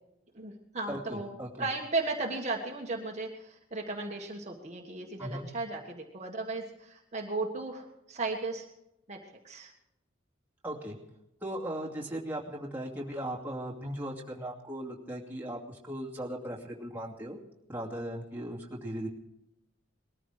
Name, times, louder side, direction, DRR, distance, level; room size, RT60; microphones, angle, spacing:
voice 1, 0.3-8.7 9.1-9.2 9.4-9.7, right 3 dB, 35° right, 0 dB, 1.6 m, -35 dB
voice 2, 0.9-1.7 5.2-5.5 10.6-10.9 11.4-17.4 17.7-19.1, right 1 dB, 10° right, -3 dB, 2.5 m, -38 dB
21.0 x 14.0 x 5.0 m, 0.87 s
head